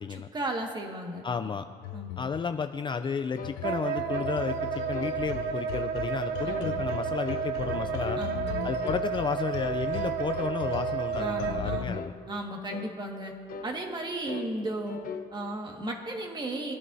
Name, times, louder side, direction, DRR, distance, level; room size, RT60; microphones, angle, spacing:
voice 1, 0.1-1.5 1.9-2.2 6.4-6.7 8.2-8.7 11.2-12.0 12.3-13.3 13.6-15.0 15.3-16.7, right 1 dB, 25° right, 1 dB, 1.9 m, -35 dB
voice 2, 1.2-1.7 2.2-8.2 8.6-12.1, left 6 dB, 30° left, 8 dB, 0.4 m, -32 dB
sound 1, 1.8-12.0, left 14 dB, 90° left, 0.4 m, -39 dB
sound 2, 3.4-3.6 4.1-4.4 4.9-5.2 5.7-5.9 6.5-6.7 7.3-7.5 8.0-8.3 8.8-9.1 9.6-9.8 10.4-10.6 11.1-11.4 11.9-12.2 12.7-12.9 13.5-13.7 14.3-14.5 14.9-15.3, left 6 dB, 55° left, 0.9 m, -39 dB
Wind instrument woodwind instrument, 3.6-11.8, right 8 dB, 70° right, 0.8 m, -32 dB
23.0 x 11.0 x 2.8 m, 2.1 s
cardioid pair, 110°, 17 cm